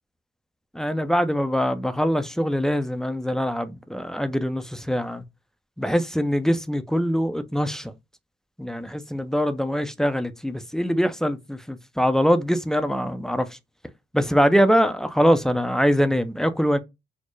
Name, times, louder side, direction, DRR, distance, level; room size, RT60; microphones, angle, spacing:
voice 1, 0.7-5.2 5.8-7.9 8.6-13.5 14.1-16.8, equal, 5° left, 0.4 m, -23 dB
4.3 x 2.0 x 3.1 m
cardioid pair, 90°, 20 cm